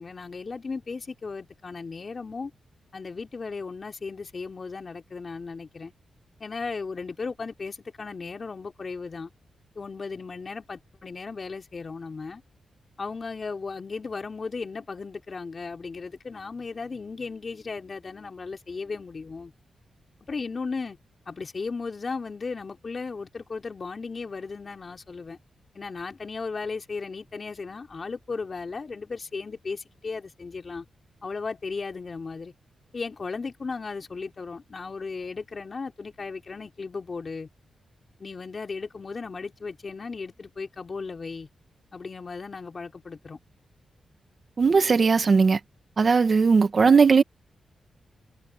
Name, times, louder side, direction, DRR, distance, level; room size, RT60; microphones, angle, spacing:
voice 1, 0.0-2.5 2.9-5.9 6.4-9.3 9.7-12.4 13.0-19.5 20.3-21.0 21.3-25.4 25.7-30.9 31.2-32.5 32.9-37.5 38.2-41.5 41.9-43.4, left 4 dB, 45° left, 4.1 m, -36 dB
voice 2, 44.6-45.6 46.0-47.2, right 5 dB, 50° right, 1.9 m, -18 dB
cardioid pair, 75°, 0 cm